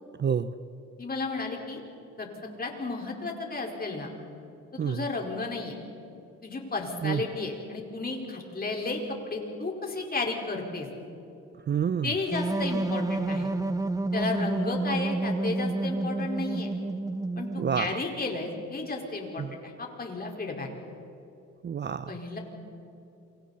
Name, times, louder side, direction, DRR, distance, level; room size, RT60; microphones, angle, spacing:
voice 1, 0.2-0.5 4.8-5.0 7.0-7.2 11.7-12.1 17.6-18.0 19.4-19.5 21.6-22.2, right 7 dB, 35° right, 14 dB, 0.6 m, -28 dB
voice 2, 1.0-1.8 2.2-2.3 2.6-4.1 4.7-5.8 6.4-10.9 12.0-13.5 14.1-16.7 17.4-20.7 22.1-22.4, left 3 dB, 30° left, 0 dB, 4.7 m, -33 dB
sound 1, 12.3-17.9, right 2 dB, 10° right, 0.9 m, -29 dB
28.0 x 25.5 x 4.2 m, 2.9 s
cardioid pair, 90°, 30 cm